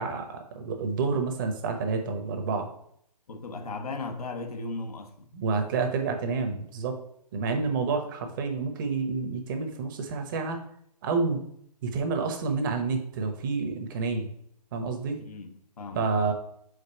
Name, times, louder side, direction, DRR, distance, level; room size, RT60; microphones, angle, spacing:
voice 1, 0.0-2.7 5.3-7.0 7.3-10.6 11.0-11.4 11.8-14.3 14.7-15.2 15.9-16.3, right 4 dB, 30° right, 0.9 m, -29 dB
voice 2, 3.3-5.4 15.2-16.3, left 3 dB, 65° left, 1.1 m, -37 dB
5.1 x 3.9 x 5.5 m
hypercardioid pair, 150°, 21 cm